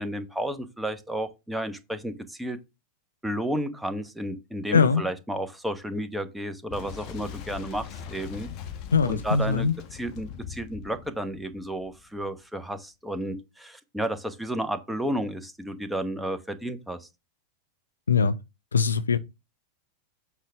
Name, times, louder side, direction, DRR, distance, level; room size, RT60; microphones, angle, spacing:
voice 1, 0.0-2.6 3.2-8.5 9.1-17.1, right 1 dB, 5° right, 1.0 m, -32 dB
Boom, 6.7-12.3, left 8 dB, 40° left, 1.2 m, -41 dB
voice 2, 8.9-9.7 18.1-18.4 18.7-19.2, left 5 dB, 75° left, 0.5 m, -21 dB
7.8 x 5.0 x 3.3 m
figure-of-eight pair, 90°, 0 cm